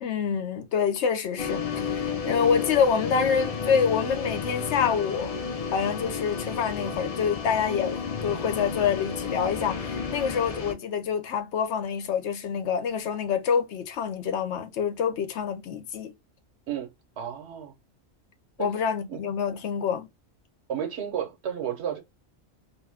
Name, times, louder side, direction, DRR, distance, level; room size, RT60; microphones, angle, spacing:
voice 1, 0.0-5.3 5.7-16.1 18.6-20.1, left 6 dB, 80° left, 0.9 m, -27 dB
sound 1, 1.4-10.7, left 6 dB, 45° left, 0.5 m, -32 dB
voice 2, 16.7-17.7 18.6-18.7 19.1-19.2 20.7-22.0, right 9 dB, 70° right, 1.1 m, -32 dB
2.6 x 2.3 x 3.3 m
omnidirectional pair, 1.2 m